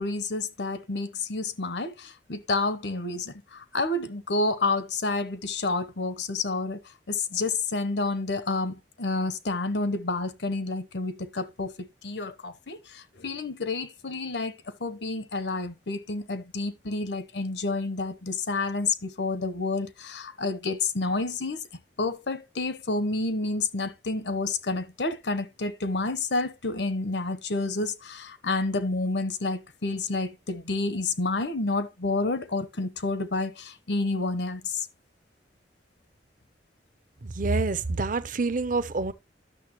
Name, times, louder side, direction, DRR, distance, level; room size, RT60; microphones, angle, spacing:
voice 1, 0.0-6.8 7.1-14.5 14.8-21.6 22.0-34.9, left 3 dB, 75° left, 1.0 m, -29 dB
voice 2, 37.2-39.1, right 3 dB, 50° right, 0.7 m, -27 dB
11.0 x 6.7 x 3.0 m
head